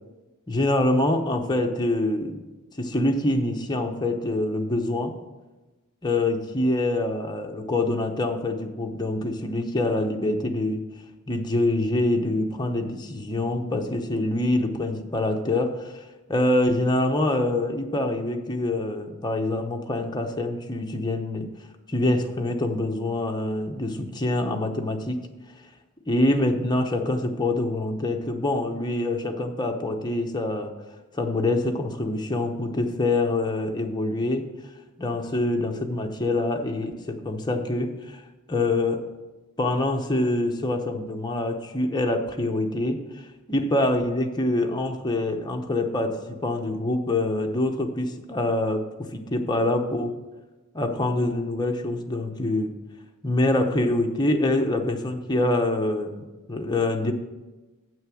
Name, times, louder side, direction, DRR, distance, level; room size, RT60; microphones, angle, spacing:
voice 1, 0.5-2.4 2.8-5.1 6.0-10.8 11.3-15.9 16.3-21.5 21.9-25.2 26.1-30.7 31.1-34.4 35.0-38.2 38.5-39.0 39.6-43.2 43.5-50.1 50.7-52.7 53.2-57.1, left 2 dB, 20° left, 3 dB, 0.8 m, -25 dB
8.4 x 6.3 x 6.3 m, 1.1 s
head